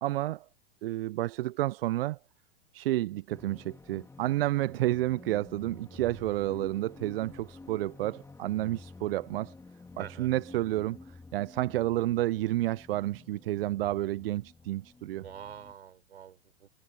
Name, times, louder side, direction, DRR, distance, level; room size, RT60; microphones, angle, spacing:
voice 1, 0.0-0.4 0.8-2.2 2.7-9.5 10.0-11.0 11.3-15.2, right 16 dB, 60° right, 0.7 m, -30 dB
sound 1, 3.3-15.7, left 3 dB, 10° left, 2.8 m, -50 dB
voice 2, 10.0-10.3 15.1-16.7, right 8 dB, 75° right, 6.4 m, -47 dB
hypercardioid pair, 105°, 33 cm